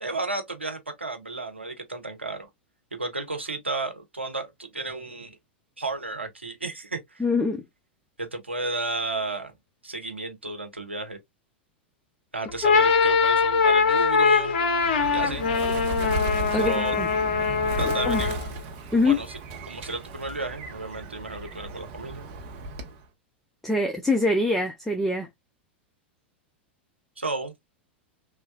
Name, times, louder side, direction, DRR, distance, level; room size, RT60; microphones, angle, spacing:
voice 1, 0.0-2.5 3.0-5.4 5.8-7.2 8.2-9.5 9.8-11.2 12.3-14.6 15.1-15.5 16.6-16.9 17.8-18.3 19.0-19.4 19.6-22.2 27.2-27.5, right 3 dB, 85° right, 0.7 m, -32 dB
voice 2, 7.2-7.6 16.5-17.1 18.0-18.2 18.9-19.2 23.6-25.3, left 2 dB, 5° left, 0.4 m, -24 dB
sound 1, 12.5-18.5, left 5 dB, 55° left, 0.6 m, -22 dB
Bird, 14.8-23.0, right 2 dB, 45° right, 0.7 m, -35 dB
3.1 x 2.2 x 2.4 m
figure-of-eight pair, 95°, 6 cm